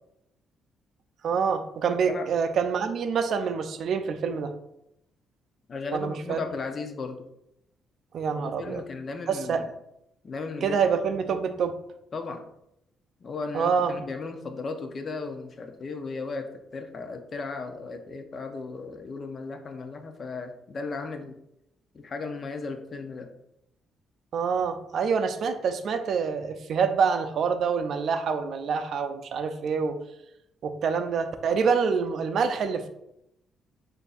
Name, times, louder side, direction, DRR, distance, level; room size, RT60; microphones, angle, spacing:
voice 1, 1.2-4.5 5.9-6.4 8.1-8.8 9.3-9.6 10.6-11.8 13.5-13.9 24.3-30.0 30.6-32.9, right 6 dB, 65° right, 9 dB, 0.4 m, -26 dB
voice 2, 5.7-7.2 8.3-9.6 10.2-10.8 12.1-12.4 13.2-21.3 21.9-23.3, left 4 dB, 45° left, 6 dB, 0.6 m, -36 dB
6.6 x 2.6 x 2.4 m, 0.80 s
cardioid pair, 90°, 0 cm